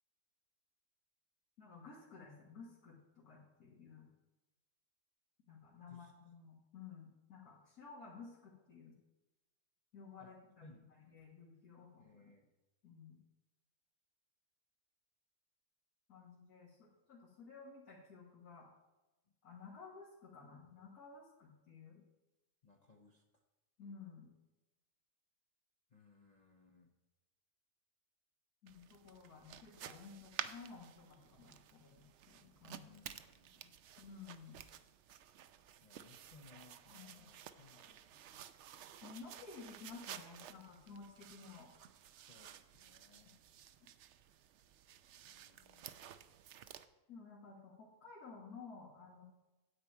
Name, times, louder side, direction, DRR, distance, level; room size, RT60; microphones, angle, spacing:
voice 1, 1.6-4.1 5.5-9.0 9.9-10.8 11.1-12.2 12.8-13.2 16.1-18.7 19.4-22.0 23.8-24.3 28.6-32.9 34.0-34.6 36.9-37.3 39.0-41.7 43.3-43.4 43.8-43.9 47.1-49.2, left 5 dB, 80° left, -6 dB, 2.2 m, -54 dB
voice 2, 5.8-6.1 10.2-10.3 10.6-11.3 12.0-12.5 22.6-23.4 25.9-26.9 32.8-33.8 35.8-38.3 42.3-43.4 45.2-46.1, left 4 dB, 35° left, 0 dB, 0.8 m, -64 dB
sound 1, 28.7-46.9, right 10 dB, 70° right, 0.7 m, -53 dB
9.5 x 8.6 x 4.5 m, 1.1 s
omnidirectional pair, 1.6 m